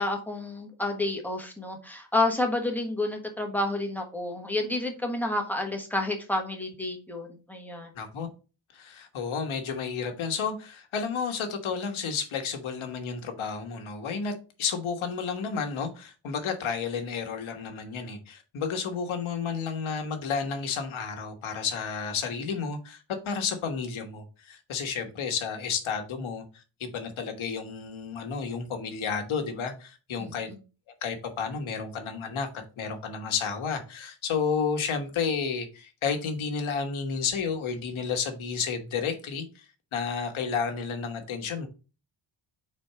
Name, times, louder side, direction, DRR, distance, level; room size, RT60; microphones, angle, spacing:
voice 1, 0.0-7.9 30.2-30.6, left 2 dB, 5° left, 1.3 m, -30 dB
voice 2, 7.9-8.3 8.7-26.4 26.8-30.5 31.0-39.6 39.9-41.7, left 6 dB, 75° left, 1.4 m, -31 dB
4.4 x 4.3 x 5.6 m
wide cardioid pair, 140°, 49 cm